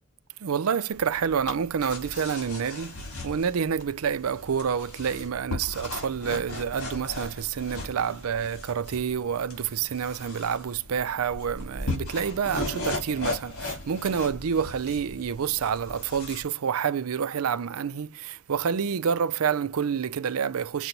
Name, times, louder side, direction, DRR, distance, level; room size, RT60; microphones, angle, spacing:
voice 1, 0.4-3.0 3.2-20.9, right 7 dB, 75° right, 0.5 m, -28 dB
sound 1, 0.9-16.4, left 2 dB, 85° left, 4.3 m, -37 dB
8.1 x 2.9 x 5.2 m
head